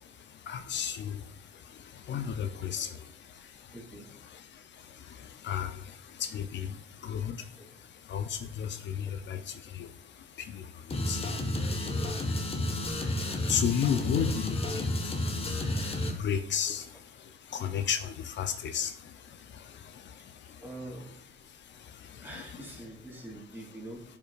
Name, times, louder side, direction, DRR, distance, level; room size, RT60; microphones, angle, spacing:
voice 1, 0.0-22.8 23.1-23.2, left 8 dB, 65° left, 9 dB, 0.7 m, -36 dB
voice 2, 3.7-4.1 7.6-7.7 11.8-12.1 13.9-14.0 20.6-21.1 22.2-24.0, right 1 dB, 10° right, -1 dB, 2.9 m, -44 dB
sound 1, 10.9-16.1, left 1 dB, 30° left, 1.4 m, -31 dB
11.0 x 5.4 x 2.5 m, 0.72 s
cardioid pair, 90°, 20 cm